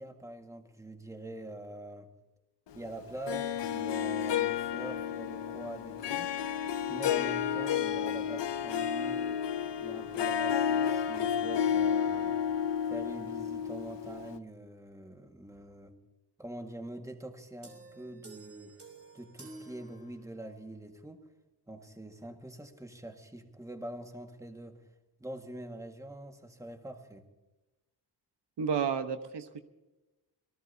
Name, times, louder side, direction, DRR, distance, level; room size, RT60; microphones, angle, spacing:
voice 1, 0.0-2.1 2.7-6.3 6.9-9.5 9.8-12.4 12.9-15.9 16.4-18.8 19.1-21.3 21.7-24.8 25.2-27.3, right 1 dB, 10° right, 4 dB, 1.8 m, -44 dB
Harp, 3.3-14.4, left 8 dB, 85° left, 0.8 m, -31 dB
sound 1, 17.6-20.6, right 3 dB, 35° right, 3.2 m, -51 dB
voice 2, 28.6-29.6, right 6 dB, 80° right, 8 dB, 1.2 m, -31 dB
27.0 x 19.0 x 2.8 m, 1.1 s
wide cardioid pair, 115°, 41 cm